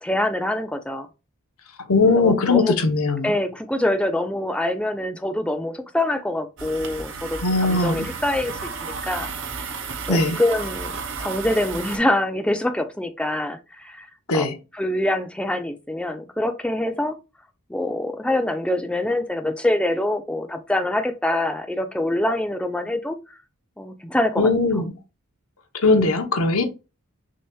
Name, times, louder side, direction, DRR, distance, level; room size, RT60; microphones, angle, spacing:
voice 1, 0.0-1.1 2.2-2.7 3.2-7.4 7.7-9.3 10.0-10.9 11.2-14.1 14.3-14.5 14.7-17.2 17.7-23.2 23.8-24.5, left 1 dB, 5° left, 0.4 m, -25 dB
voice 2, 1.9-3.3 7.4-8.1 10.1-10.4 14.3-14.6 24.4-24.9 25.7-26.6, left 3 dB, 75° left, 0.8 m, -19 dB
sound 1, 6.6-12.0, right 5 dB, 55° right, 0.7 m, -33 dB
6.2 x 2.9 x 2.2 m
head